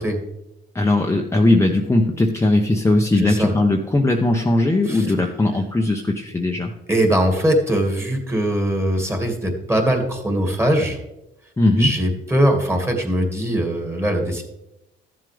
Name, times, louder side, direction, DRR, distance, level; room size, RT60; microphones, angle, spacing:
voice 1, 0.7-6.7 11.6-11.9, left 2 dB, 15° left, 1 dB, 0.9 m, -19 dB
voice 2, 3.2-3.5 4.9-5.1 6.9-11.0 11.8-14.4, equal, 15° right, 2 dB, 2.1 m, -21 dB
13.5 x 7.4 x 3.4 m, 0.90 s
cardioid pair, 90°, 20 cm